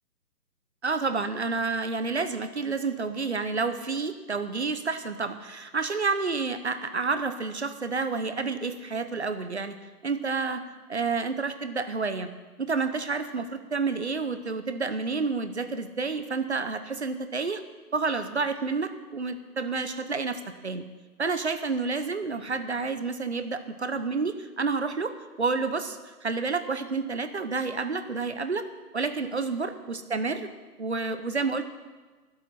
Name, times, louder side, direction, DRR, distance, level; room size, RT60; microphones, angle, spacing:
voice 1, 0.8-9.8 10.0-10.6 10.9-12.3 12.6-17.6 17.9-20.9 21.2-28.7 28.9-30.5 30.8-31.6, right 4 dB, 45° right, 10 dB, 0.8 m, -29 dB
22.5 x 8.1 x 4.2 m, 1.3 s
hypercardioid pair, 180°, 48 cm